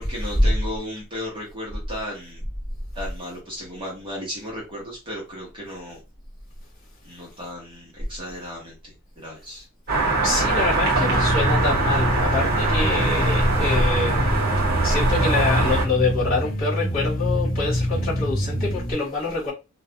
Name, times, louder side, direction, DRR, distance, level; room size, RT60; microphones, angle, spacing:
voice 1, 0.0-2.4 2.9-6.0 7.0-9.7, left 1 dB, 25° right, 0.8 m, -35 dB
sound 1, 9.9-15.8, right 2 dB, 45° right, 1.0 m, -22 dB
voice 2, 10.2-14.3 14.8-19.5, left 3 dB, 30° left, 1.0 m, -26 dB
sound 2, 10.9-18.9, equal, 75° left, 0.7 m, -25 dB
2.3 x 2.1 x 2.8 m
head